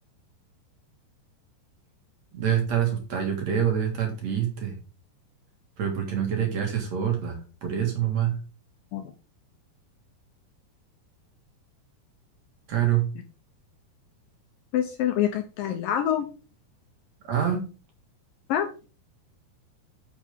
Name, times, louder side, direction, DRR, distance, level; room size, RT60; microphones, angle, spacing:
voice 1, 2.3-4.7 5.8-8.3 12.7-13.0 17.3-17.6, right 9 dB, 50° right, 2 dB, 2.4 m, -26 dB
voice 2, 14.7-16.3 18.5-18.7, left 10 dB, 75° left, 6 dB, 2.1 m, -25 dB
8.6 x 6.7 x 3.6 m, 0.35 s
omnidirectional pair, 4.8 m